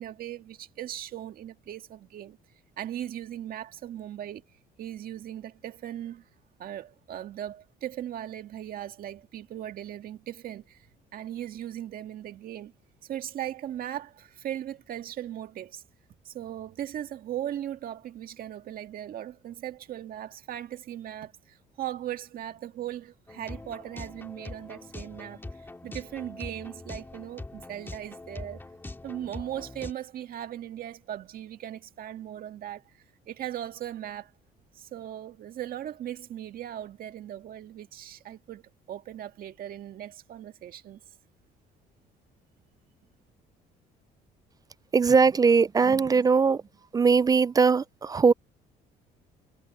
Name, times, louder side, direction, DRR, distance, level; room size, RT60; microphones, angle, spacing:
voice 1, 0.0-2.4 2.8-4.4 4.8-6.2 6.6-12.7 13.0-15.8 16.3-28.6 29.0-32.9 33.3-34.3 34.8-38.6 38.9-41.0, right 11 dB, 60° right, 1.9 m, -38 dB
sound 1, 23.3-29.9, left 2 dB, 15° left, 2.6 m, -43 dB
voice 2, 44.9-46.6 46.9-48.3, right 5 dB, 20° right, 0.4 m, -20 dB
cardioid pair, 110°, 17 cm